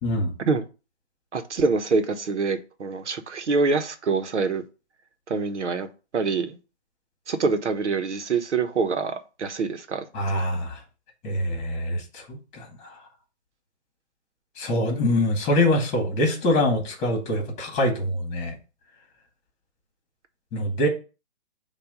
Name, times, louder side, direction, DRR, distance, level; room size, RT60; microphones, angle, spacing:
voice 1, 0.0-0.3 10.1-10.8 11.2-13.0 14.6-18.6 20.5-20.9, left 1 dB, 20° left, 2 dB, 1.9 m, -24 dB
voice 2, 1.3-4.6 5.3-5.9 6.1-6.6 7.3-10.0, right 4 dB, 85° right, 8 dB, 1.1 m, -25 dB
7.1 x 2.6 x 5.1 m, 0.32 s
hypercardioid pair, 150°, 34 cm